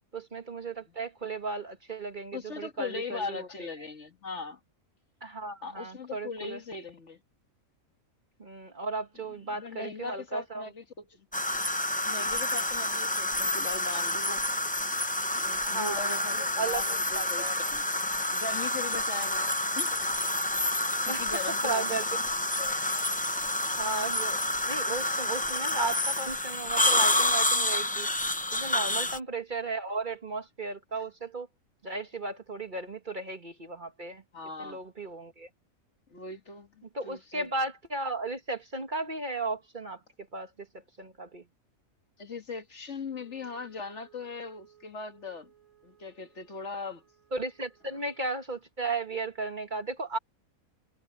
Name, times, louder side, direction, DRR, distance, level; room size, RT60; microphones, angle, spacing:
voice 1, 0.1-3.9 5.2-6.6 8.4-10.6 15.6-16.8 17.1-17.6 19.3-19.5 21.1-21.2 21.6-22.1 22.6-23.1 23.8-24.4 24.7-28.1 28.5-31.5 31.8-34.2 34.6-35.5 36.9-40.0 40.3-40.7 41.0-41.4 47.3-50.2, right 3 dB, 35° right, 1.5 m, -35 dB
voice 2, 2.3-4.6 5.6-7.2 9.5-11.3 12.0-14.4 15.4-17.4 17.7-17.9 18.3-19.5 19.8-20.0 21.0-22.2 24.0-24.1 28.7-29.1 34.3-34.8 36.1-37.5 42.2-45.5 45.8-47.0 47.9-48.0, left 4 dB, 55° left, 2.0 m, -39 dB
sound 1, 11.3-29.2, left 1 dB, 10° left, 0.4 m, -29 dB
Wind instrument woodwind instrument, 43.1-48.4, right 11 dB, 80° right, 4.9 m, -62 dB
omnidirectional pair, 1.4 m